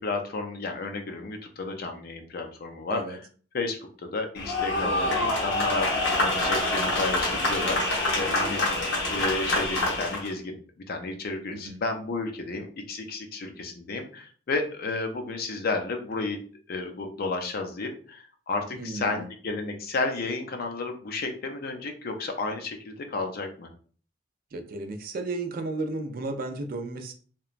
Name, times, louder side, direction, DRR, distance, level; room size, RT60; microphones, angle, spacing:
voice 1, 0.0-3.2 3.5-10.6 10.9-16.4 16.7-23.7, left 3 dB, 55° left, 5 dB, 0.5 m, -32 dB
sound 1, 4.4-10.3, left 2 dB, 80° left, 0.9 m, -26 dB
voice 2, 4.8-5.2 11.5-11.8 18.7-19.3 24.5-27.1, right 2 dB, 50° right, 7 dB, 0.4 m, -34 dB
2.9 x 2.2 x 2.4 m, 0.43 s
head